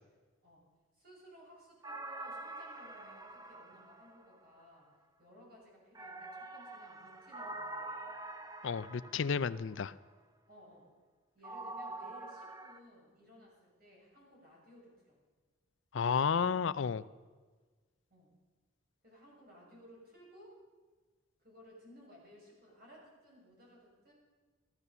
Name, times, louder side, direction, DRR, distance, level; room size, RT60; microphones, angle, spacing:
voice 1, 0.9-4.9 5.2-8.1 10.5-10.9 11.3-15.2 18.1-18.3 19.0-20.6 21.4-24.1, equal, 50° right, -3 dB, 6.8 m, -58 dB
sound 1, 1.8-4.7 5.9-9.8 11.4-12.8, right 2 dB, 20° right, 0.8 m, -46 dB
voice 2, 8.6-9.9 15.9-17.0, left 6 dB, 65° left, 16 dB, 0.5 m, -32 dB
15.0 x 13.5 x 6.9 m, 1.4 s
head